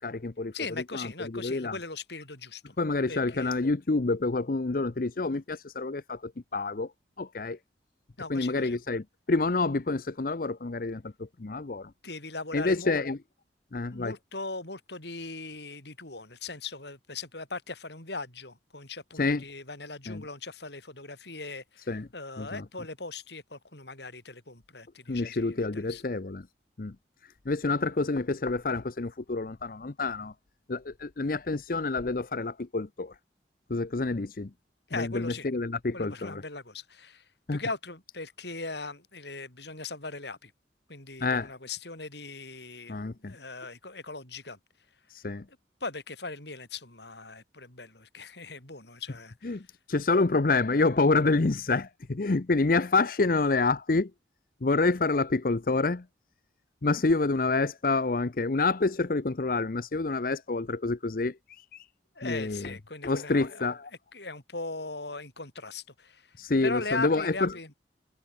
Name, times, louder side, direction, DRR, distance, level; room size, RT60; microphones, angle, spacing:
voice 1, 0.0-0.5 0.9-1.8 2.8-6.9 7.2-7.6 8.3-11.9 12.5-13.2 13.7-14.1 19.2-19.4 20.1-20.2 21.9-22.1 22.4-22.6 25.1-26.5 26.8-27.0 27.2-30.3 30.7-33.2 33.7-34.5 34.9-36.4 37.5-37.6 41.2-41.5 42.9-43.4 45.1-45.4 49.4-54.1 54.6-56.1 56.8-61.9 62.2-62.7 63.0-63.9 66.4-67.5, left 3 dB, 50° left, 0.7 m, -28 dB
voice 2, 0.5-2.8 3.1-3.6 8.2-8.8 12.0-13.0 13.9-26.0 34.9-35.5 35.9-40.5 40.9-44.6 45.8-49.6 62.1-63.7 64.1-67.7, left 3 dB, 70° left, 6.0 m, -39 dB
head